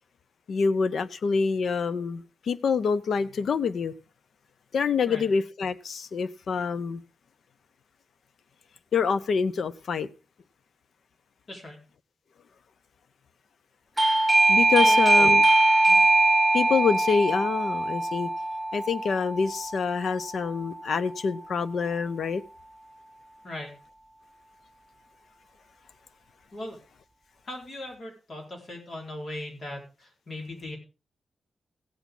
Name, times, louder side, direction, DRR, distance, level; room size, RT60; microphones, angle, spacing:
voice 1, 0.5-3.9 4.7-7.0 8.9-10.1 14.5-15.4 16.5-18.3 18.7-22.4, left 5 dB, 70° left, 0.7 m, -26 dB
voice 2, 11.5-11.8 14.9-15.3 15.8-16.0 23.4-23.7 26.5-26.8 27.5-30.8, left 1 dB, 50° left, 4.7 m, -39 dB
Doorbell, 14.0-20.4, right 2 dB, 10° right, 0.7 m, -21 dB
16.5 x 8.3 x 3.9 m
wide cardioid pair, 130°, 0 cm